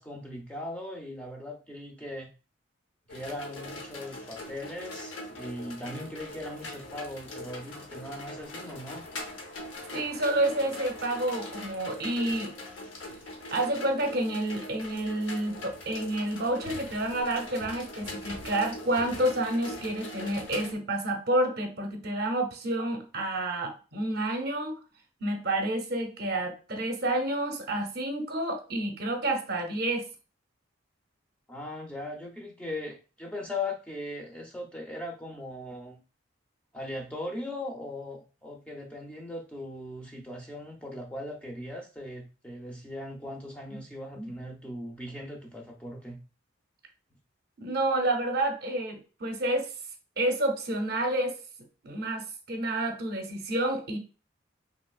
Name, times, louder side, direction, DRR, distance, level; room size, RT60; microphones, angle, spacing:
voice 1, 0.0-2.3 3.1-9.0 31.5-36.0 36.7-46.2, left 1 dB, 5° left, 0 dB, 0.4 m, -39 dB
sound 1, 3.1-20.7, left 1 dB, 75° left, 0.7 m, -41 dB
voice 2, 9.9-12.5 13.5-24.8 25.2-30.0 43.7-43.8 44.2-44.3 47.6-49.7 50.2-51.3 51.8-54.0, right 1 dB, 50° right, 4 dB, 0.6 m, -29 dB
3.0 x 2.7 x 2.3 m, 0.33 s
head